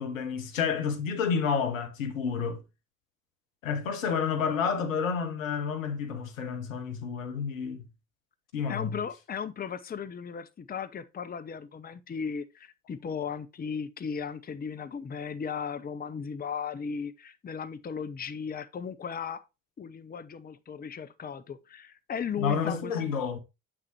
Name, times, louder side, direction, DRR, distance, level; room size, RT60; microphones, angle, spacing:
voice 1, 0.0-2.6 3.6-7.8 8.5-9.0 22.4-23.4, left 6 dB, 85° left, 1.1 m, -30 dB
voice 2, 8.7-19.4 19.8-23.0, left 6 dB, 25° left, 0.7 m, -36 dB
7.6 x 6.1 x 2.9 m
figure-of-eight pair, 50°, 39 cm